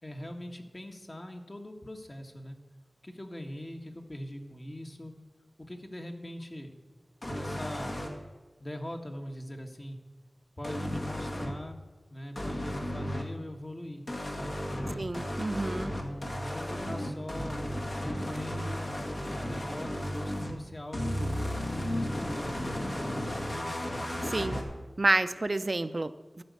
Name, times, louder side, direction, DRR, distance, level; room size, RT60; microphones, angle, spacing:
voice 1, 0.0-2.6 3.0-5.1 5.6-6.7 7.3-8.0 8.6-10.0 10.6-11.8 12.1-15.1 15.7-17.6 18.0-18.9 19.3-21.3 21.7-23.0, left 1 dB, 35° left, 3 dB, 1.6 m, -42 dB
sound 1, 7.2-8.1 10.6-11.5 12.4-13.2 14.1-20.5 20.9-24.6, equal, 60° left, 1.9 m, -34 dB
voice 2, 15.0-15.9 24.2-24.6 25.0-26.4, right 2 dB, 50° right, 12 dB, 0.6 m, -29 dB
12.5 x 5.2 x 8.2 m, 1.3 s
wide cardioid pair, 50°, 0 cm